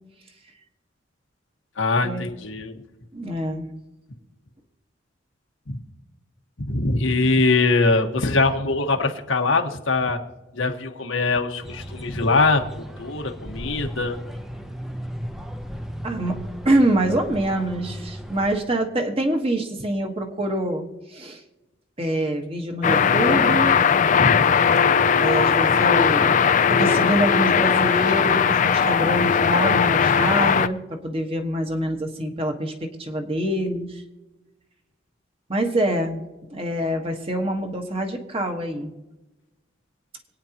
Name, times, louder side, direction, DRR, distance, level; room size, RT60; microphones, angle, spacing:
voice 1, 1.8-2.7 5.7-5.8 6.7-10.2 10.5-14.2 23.1-23.2 24.2-24.4, left 3 dB, 85° left, 4 dB, 1.4 m, -22 dB
voice 2, 3.1-3.7 16.0-16.4 16.6-20.8 21.1-21.4 22.0-23.8 25.2-26.4 26.7-34.0 35.5-38.9, right 1 dB, 30° right, 4 dB, 1.4 m, -25 dB
sound 1, 11.6-18.6, equal, ahead, 0.7 m, -36 dB
sound 2, 22.8-30.7, left 6 dB, 40° left, 0.4 m, -18 dB
26.0 x 9.4 x 2.9 m, 1.1 s
head